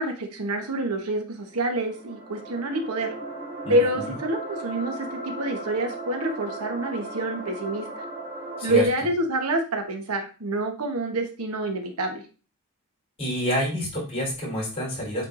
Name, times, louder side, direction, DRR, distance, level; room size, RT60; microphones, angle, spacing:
voice 1, 0.0-3.1 3.7-8.0 8.6-12.2, right 1 dB, 85° right, 4 dB, 1.1 m, -27 dB
sound 1, 1.4-8.9, right 2 dB, 30° right, 1.4 m, -37 dB
voice 2, 3.6-4.1 8.6-8.9 13.2-15.2, equal, 25° left, -4 dB, 3.8 m, -28 dB
8.6 x 4.5 x 2.6 m, 0.35 s
head